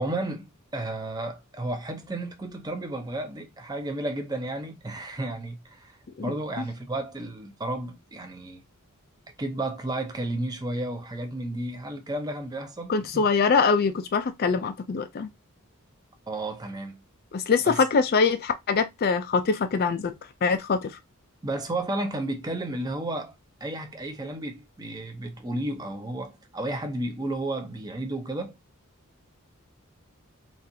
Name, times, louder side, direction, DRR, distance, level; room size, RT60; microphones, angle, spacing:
voice 1, 0.0-8.6 9.4-13.2 16.3-17.0 17.7-17.8 21.4-23.4 23.6-28.6, right 1 dB, 20° right, 0.6 m, -32 dB
voice 2, 12.9-15.3 17.3-20.1 20.4-20.9, left 5 dB, 45° left, 0.4 m, -23 dB
4.0 x 2.5 x 2.6 m
head